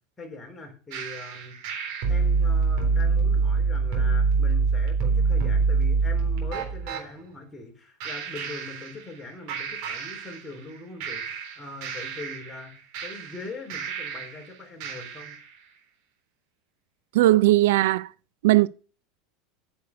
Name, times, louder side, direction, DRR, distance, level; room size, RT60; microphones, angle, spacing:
voice 1, 0.2-15.3, left 2 dB, 15° left, 3.9 m, -42 dB
sound 1, 0.9-7.0 8.0-9.2 9.5-10.7 11.0-14.4 14.8-15.4, right 4 dB, 60° right, 3.7 m, -26 dB
voice 2, 17.1-18.1 18.4-18.7, right 16 dB, 80° right, 0.4 m, -18 dB
9.4 x 6.5 x 7.8 m
supercardioid pair, 140°, 0 cm